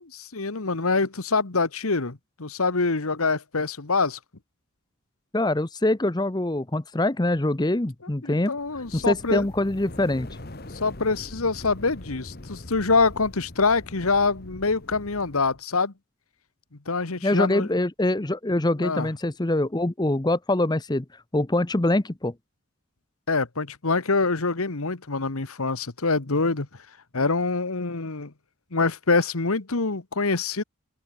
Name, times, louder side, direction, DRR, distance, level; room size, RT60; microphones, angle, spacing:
voice 1, 0.1-4.2 8.2-9.5 10.7-15.9 16.8-17.7 18.8-19.1 23.3-26.7 27.1-28.3 28.7-30.6, left 4 dB, 80° left, 1.5 m, -25 dB
voice 2, 5.3-8.5 8.9-10.3 17.2-21.0 21.3-22.3, left 1 dB, 20° left, 0.7 m, -24 dB
sound 1, 8.6-15.6, left 1 dB, 45° left, 1.6 m, -42 dB
open air
head